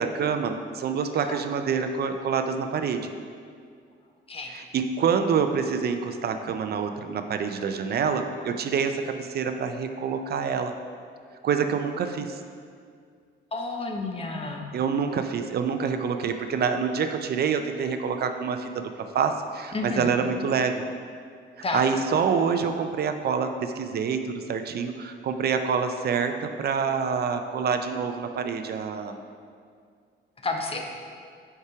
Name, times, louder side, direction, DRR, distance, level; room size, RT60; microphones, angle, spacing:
voice 1, 0.0-3.1 4.5-10.7 11.4-12.4 14.7-18.8 19.1-20.8 21.7-29.2, right 6 dB, 55° right, 7 dB, 0.4 m, -26 dB
voice 2, 13.5-14.7 19.7-20.1 21.6-21.9 30.4-30.9, left 3 dB, 30° left, 2 dB, 0.8 m, -30 dB
5.5 x 4.8 x 4.7 m, 2.2 s
cardioid pair, 90°, 20 cm